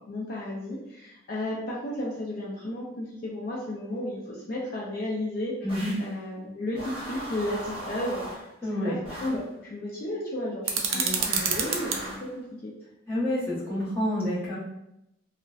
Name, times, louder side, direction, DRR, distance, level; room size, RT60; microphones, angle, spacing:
voice 1, 0.1-5.5 6.0-8.5 8.8-12.7, left 1 dB, 50° left, -5 dB, 0.4 m, -33 dB
sound 1, 5.7-6.1 6.7-8.5 9.0-9.5 11.2-12.3, right 1 dB, 25° right, 0.6 m, -38 dB
voice 2, 8.6-9.0 10.9-11.4 13.1-14.6, left 1 dB, 10° left, -10 dB, 0.8 m, -29 dB
sound 2, 10.6-12.0, right 6 dB, 90° right, 0.4 m, -27 dB
2.6 x 2.0 x 2.3 m, 0.85 s
head